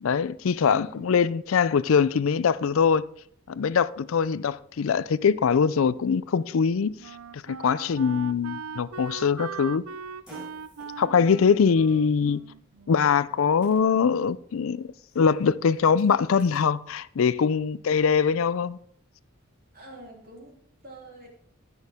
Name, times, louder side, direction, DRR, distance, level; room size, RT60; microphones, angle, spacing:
voice 1, 0.0-3.0 3.5-6.9 7.3-9.8 11.0-12.4 12.9-18.8, left 6 dB, 75° left, 0.4 m, -23 dB
voice 2, 0.6-1.2 11.0-12.1 19.7-21.3, right 2 dB, 45° right, 3.1 m, -47 dB
Wind instrument woodwind instrument, 6.0-13.3, right 6 dB, 90° right, 0.5 m, -41 dB
Fart, 8.9-16.6, equal, 5° right, 5.2 m, -56 dB
15.5 x 6.3 x 3.6 m
head